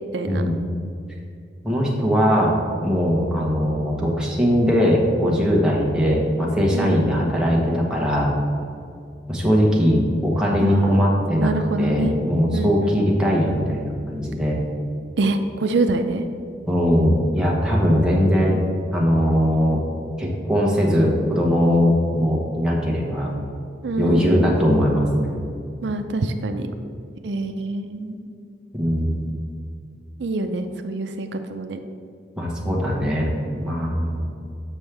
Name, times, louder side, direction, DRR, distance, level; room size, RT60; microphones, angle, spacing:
voice 1, 0.1-0.5 6.7-7.1 10.6-11.0 11.4-12.1 12.5-13.0 15.2-16.2 23.8-24.4 25.8-26.7 27.2-28.3 30.2-31.8, right 2 dB, 80° right, 7 dB, 0.4 m, -25 dB
voice 2, 1.6-8.3 9.3-11.5 11.8-14.6 16.7-18.6 18.9-19.8 20.2-23.3 24.0-25.4 28.7-29.4 32.4-33.3 33.6-34.3, equal, 5° right, -4 dB, 1.0 m, -20 dB
7.3 x 6.1 x 3.3 m, 2.4 s
head